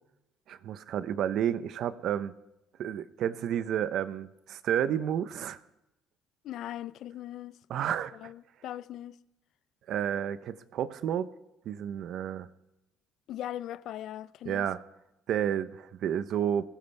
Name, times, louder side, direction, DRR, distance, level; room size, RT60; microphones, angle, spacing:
voice 1, 0.5-2.3 2.8-5.6 7.7-8.3 9.9-11.3 11.6-12.5 14.4-14.8 15.3-16.6, right 9 dB, 65° right, 0.9 m, -31 dB
voice 2, 6.4-7.6 8.1-9.2 13.3-14.7, left 12 dB, 65° left, 0.5 m, -39 dB
20.5 x 17.0 x 3.5 m
cardioid pair, 105°, 0 cm